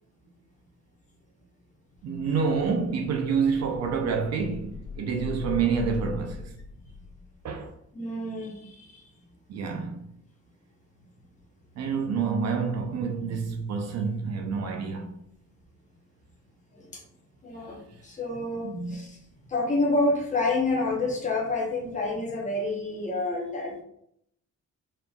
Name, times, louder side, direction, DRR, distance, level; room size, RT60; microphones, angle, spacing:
sound 1, 1.9-7.5, left 5 dB, 60° left, 1.4 m, -41 dB
voice 1, 2.0-6.5 7.4-7.7 9.5-10.1 11.8-15.1 18.6-19.0, right 5 dB, 60° right, 0.6 m, -28 dB
voice 2, 7.9-9.1 16.7-17.0 17.4-19.2 19.5-23.8, left 2 dB, 25° left, 0.9 m, -28 dB
4.3 x 3.7 x 2.3 m
wide cardioid pair, 175°, 30 cm